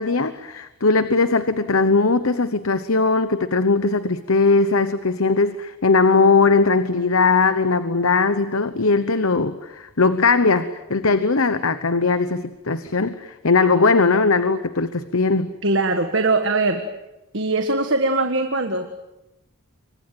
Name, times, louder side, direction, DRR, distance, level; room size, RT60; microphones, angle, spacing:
voice 1, 0.0-15.5, left 4 dB, 70° left, 12 dB, 1.0 m, -19 dB
voice 2, 15.6-16.8 17.3-18.9, right 2 dB, 55° right, 6 dB, 1.7 m, -21 dB
29.0 x 24.5 x 7.7 m, 0.95 s
head